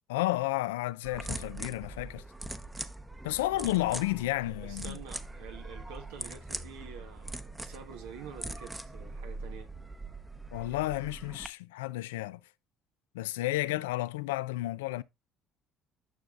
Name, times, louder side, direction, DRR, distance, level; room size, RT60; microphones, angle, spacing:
voice 1, 0.1-2.2 3.2-5.0 10.5-12.4 13.1-15.0, left 17 dB, 90° left, 0.4 m, -32 dB
sound 1, 1.0-11.5, right 2 dB, 10° right, 0.8 m, -42 dB
voice 2, 4.6-9.7, right 7 dB, 85° right, 1.1 m, -47 dB
9.2 x 6.4 x 2.4 m
supercardioid pair, 75°, 0 cm